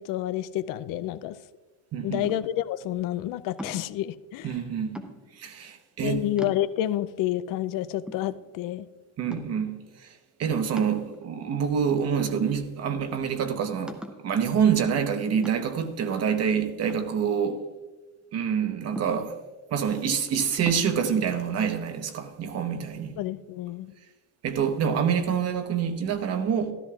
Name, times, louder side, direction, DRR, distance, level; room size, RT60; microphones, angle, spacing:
voice 1, 0.0-1.4 2.0-4.5 6.0-8.9 23.2-23.9, left 13 dB, 55° left, 0.5 m, -29 dB
voice 2, 1.9-2.3 4.4-5.0 5.3-6.2 9.2-17.6 18.3-19.4 19.7-23.1 24.4-26.7, right 7 dB, 40° right, 1.0 m, -26 dB
sound 1, 2.2-2.7 3.6-4.0 4.9-5.5 6.0-6.1 6.4-7.0 7.6-7.7 8.1-8.8 9.3-9.7 10.8-11.5 12.2-12.8 13.2-13.3 13.9-14.3 15.4-15.9 16.9-17.8 19.0-19.5 20.7-20.9, equal, ahead, 0.5 m, -40 dB
13.0 x 12.5 x 2.4 m
cardioid pair, 155°, 40 cm